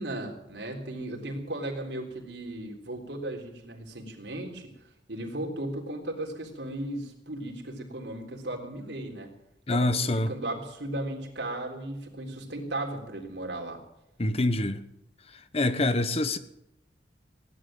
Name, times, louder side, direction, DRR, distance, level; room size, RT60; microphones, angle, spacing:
voice 1, 0.0-4.7 5.1-9.3 9.7-13.8, right 1 dB, 80° right, 3.7 m, -36 dB
voice 2, 9.7-10.3 14.2-14.8 15.5-16.4, left 2 dB, 35° left, 1.0 m, -25 dB
16.5 x 11.5 x 7.7 m
head